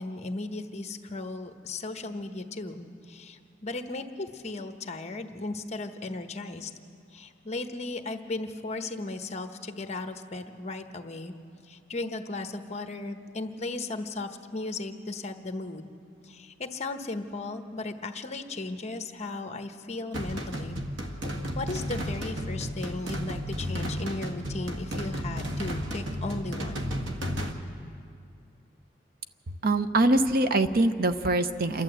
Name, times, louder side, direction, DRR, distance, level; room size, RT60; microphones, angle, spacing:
voice 1, 0.0-6.7 7.1-11.3 11.7-15.9 16.2-20.8 21.5-26.9, left 2 dB, 40° left, 7 dB, 1.0 m, -36 dB
sound 1, 20.1-27.5, equal, 90° right, 1.7 m, -33 dB
voice 2, 29.6-31.8, right 2 dB, 55° right, 10 dB, 0.7 m, -23 dB
28.0 x 11.5 x 8.0 m, 2.4 s
head